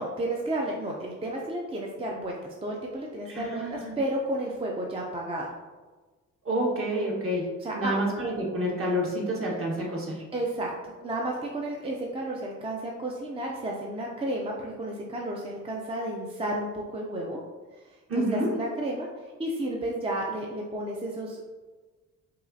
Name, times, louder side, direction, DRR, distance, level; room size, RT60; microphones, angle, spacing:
voice 1, 0.0-5.5 7.6-7.9 10.3-17.4 17.8-21.4, right 1 dB, 20° right, -1 dB, 0.5 m, -32 dB
voice 2, 3.2-4.0 6.4-10.2 18.1-18.6, right 1 dB, 45° right, -3 dB, 1.3 m, -29 dB
5.4 x 2.4 x 2.6 m, 1.3 s
cardioid pair, 90°, 30 cm